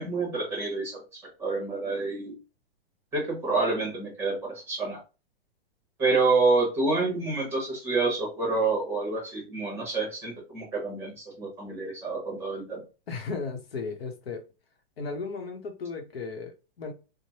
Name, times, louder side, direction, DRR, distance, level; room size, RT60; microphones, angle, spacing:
voice 1, 0.0-2.3 3.1-5.0 6.0-12.8, right 3 dB, 10° right, -3 dB, 1.0 m, -28 dB
voice 2, 13.1-14.4 15.0-16.9, left 4 dB, 75° left, 5 dB, 0.9 m, -35 dB
3.2 x 2.1 x 2.7 m, 0.31 s
hypercardioid pair, 170°, 30 cm